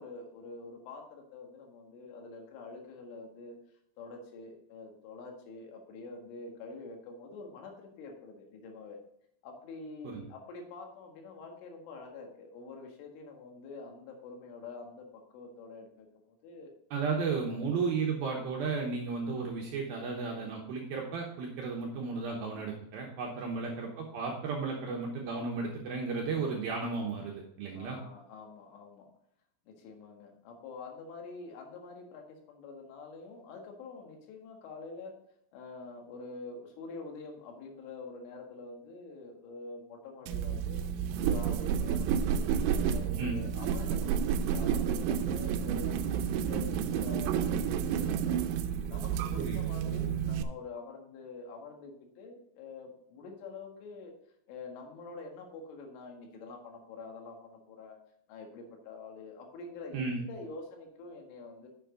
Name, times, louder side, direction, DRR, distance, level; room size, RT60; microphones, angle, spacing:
voice 1, 0.0-3.6 4.0-9.0 9.4-16.8 17.5-17.8 27.7-29.1 29.7-35.1 35.5-40.8 41.2-48.4 48.9-54.1 54.5-58.0 58.3-61.7, left 3 dB, 80° left, 2 dB, 4.1 m, -46 dB
voice 2, 16.9-28.0 43.2-43.4 49.4-49.7 59.9-60.2, right 4 dB, 70° right, -1 dB, 2.3 m, -34 dB
sound 1, 40.3-50.4, right 8 dB, 85° right, 3.2 m, -30 dB
9.8 x 7.2 x 3.8 m, 0.74 s
omnidirectional pair, 5.6 m